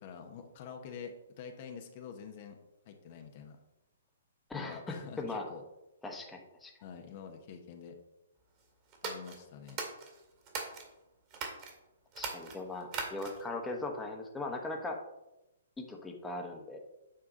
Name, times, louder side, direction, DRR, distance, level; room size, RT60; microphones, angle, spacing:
voice 1, 0.0-2.6 2.9-3.6 4.5-5.6 6.8-8.0 9.0-9.8, left 7 dB, 45° left, 5 dB, 0.9 m, -47 dB
voice 2, 4.5-5.4 6.0-6.7 12.2-15.0 15.8-16.8, left 2 dB, 10° left, 1 dB, 1.1 m, -39 dB
sound 1, 8.9-10.9 11.3-11.7 12.1-13.5, right 4 dB, 35° right, 2.0 m, -40 dB
8.8 x 3.6 x 5.2 m, 0.94 s
figure-of-eight pair, 125°, 0 cm